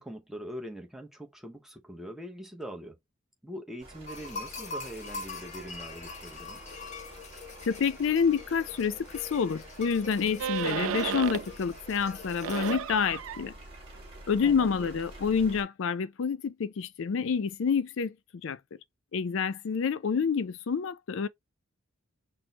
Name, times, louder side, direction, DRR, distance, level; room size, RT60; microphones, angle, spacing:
voice 1, 0.0-3.0 3.4-6.6 14.4-14.9, equal, ahead, 0.7 m, -42 dB
sound 1, 3.8-15.6, right 1 dB, 25° right, 1.7 m, -49 dB
sound 2, 4.1-12.7, left 3 dB, 35° left, 0.8 m, -43 dB
voice 2, 7.6-13.5 14.3-18.1 18.4-18.6 19.1-21.3, left 6 dB, 65° left, 0.4 m, -28 dB
sound 3, 10.4-11.6 12.0-15.6, right 8 dB, 70° right, 0.4 m, -35 dB
6.1 x 2.1 x 2.7 m
head